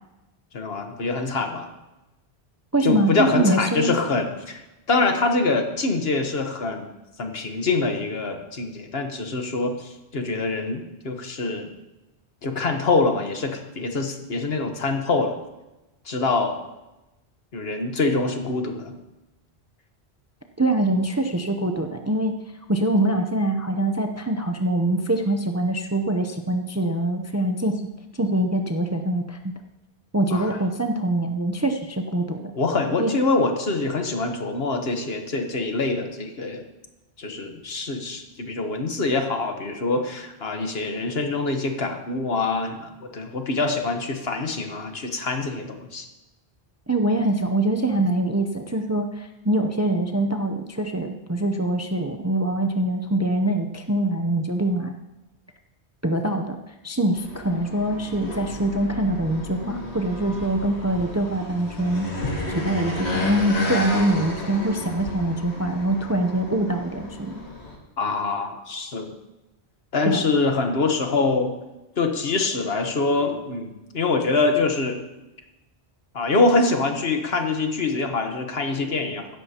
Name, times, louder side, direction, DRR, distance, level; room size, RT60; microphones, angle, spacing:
voice 1, 0.5-1.7 2.8-4.6 4.9-6.9 7.2-10.8 11.0-11.7 12.4-15.4 16.0-16.6 17.5-18.9 30.3-30.6 32.5-36.6 37.2-46.1 68.0-69.1 69.9-71.5 72.0-75.0 76.1-79.3, left 3 dB, 65° left, 5 dB, 1.5 m, -24 dB
voice 2, 2.7-3.9 20.6-22.4 22.7-27.8 28.1-29.4 30.1-32.5 33.0-33.1 46.9-54.9 56.0-62.1 62.5-67.3 70.0-70.2, right 1 dB, 20° right, 4 dB, 0.5 m, -24 dB
sound 1, 57.1-67.8, left 2 dB, 85° left, 2.4 m, -32 dB
16.0 x 13.0 x 2.9 m, 1.0 s
omnidirectional pair, 1.1 m